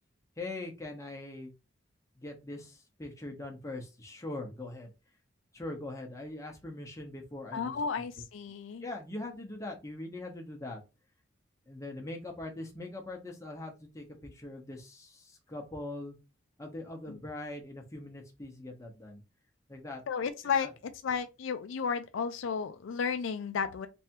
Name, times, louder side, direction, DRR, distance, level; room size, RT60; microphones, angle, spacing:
voice 1, 0.4-1.5 2.2-4.9 5.5-8.0 8.8-10.8 11.7-16.1 16.6-19.2 19.7-20.0 20.6-20.7, left 2 dB, 15° left, 0.9 m, -42 dB
voice 2, 7.5-8.9 17.1-17.2 20.1-23.9, left 6 dB, 75° left, 0.4 m, -33 dB
3.4 x 3.3 x 2.9 m
head